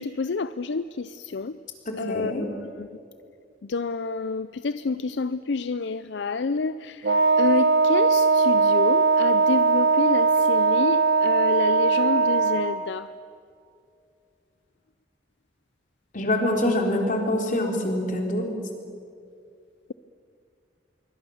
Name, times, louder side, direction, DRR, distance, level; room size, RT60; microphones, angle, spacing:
voice 1, 0.0-1.5 2.0-2.7 3.7-7.0 7.4-13.1, left 4 dB, 70° left, 14 dB, 0.5 m, -28 dB
voice 2, 1.9-2.5 16.1-18.5, left 1 dB, 45° left, 2 dB, 3.7 m, -25 dB
Wind instrument woodwind instrument, 7.0-12.8, right 4 dB, 70° right, 1.2 m, -20 dB
26.0 x 23.0 x 7.2 m, 2.4 s
head